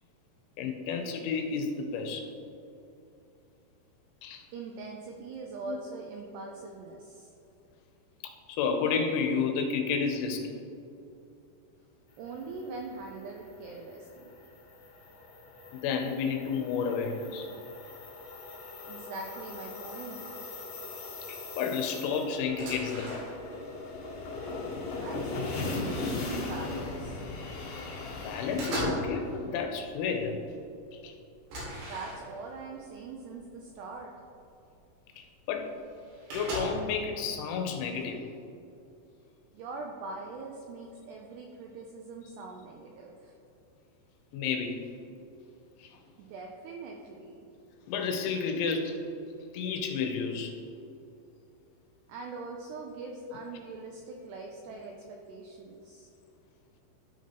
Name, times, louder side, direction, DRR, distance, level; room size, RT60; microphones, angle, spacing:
voice 1, 0.6-2.3 4.2-4.4 5.6-5.8 8.5-10.6 15.7-17.5 21.3-23.3 28.2-30.4 30.9-31.1 35.2-35.7 36.3-38.2 44.3-44.8 45.8-45.9 47.9-49.0 49.5-50.5 53.3-53.6, left 5 dB, 80° left, 3 dB, 3.1 m, -31 dB
voice 2, 4.5-7.3 12.2-14.3 18.9-20.3 25.0-27.2 31.8-34.1 39.5-43.4 46.2-47.5 52.1-56.1, right 3 dB, 85° right, 1 dB, 2.4 m, -42 dB
sound 1, 12.2-28.7, left 3 dB, 60° left, 2.5 m, -39 dB
sound 2, 22.5-23.6 24.0-25.2 25.8-25.9 26.3-27.2 27.6-28.0 28.3-29.2 29.5-29.9 30.4-30.5 30.8-30.9 31.5-32.6 33.4-33.5 34.0-34.1 35.2-35.3 35.4-35.5 35.7-37.0, right 1 dB, 65° right, 4.1 m, -38 dB
12.5 x 5.9 x 3.0 m, 2.7 s
omnidirectional pair, 5.5 m